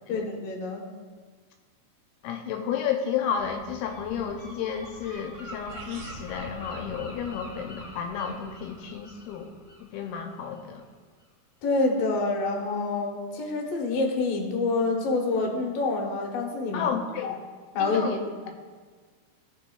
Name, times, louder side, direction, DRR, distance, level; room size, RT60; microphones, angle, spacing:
voice 1, 0.1-0.8 11.6-16.9 17.7-18.5, left 3 dB, 65° left, 0 dB, 1.7 m, -27 dB
voice 2, 2.2-9.5 9.8-10.8 16.7-17.4 17.8-18.2, left 7 dB, 85° left, 3 dB, 2.5 m, -32 dB
Gull seagull, 3.4-10.9, equal, 30° left, 1.3 m, -44 dB
sound 1, 5.7-6.3, right 4 dB, 90° right, 3.0 m, -45 dB
16.0 x 6.3 x 2.3 m, 1.5 s
omnidirectional pair, 4.5 m